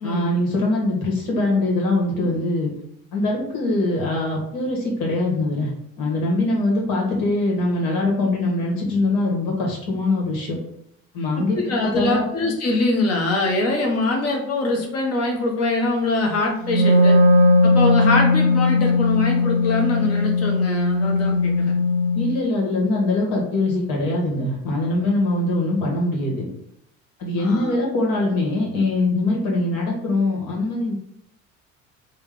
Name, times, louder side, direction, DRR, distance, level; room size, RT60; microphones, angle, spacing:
voice 1, 0.0-2.7 3.1-5.7 6.0-10.6 11.1-12.2 22.1-26.4 27.2-30.9, left 2 dB, 55° left, -2 dB, 1.4 m, -22 dB
voice 2, 11.4-17.2 17.6-21.7 27.4-27.8, left 2 dB, 35° left, 1 dB, 1.0 m, -23 dB
Wind instrument woodwind instrument, 16.6-22.3, left 2 dB, 25° right, 0.8 m, -18 dB
3.4 x 2.3 x 3.5 m, 0.74 s
figure-of-eight pair, 60°, 41 cm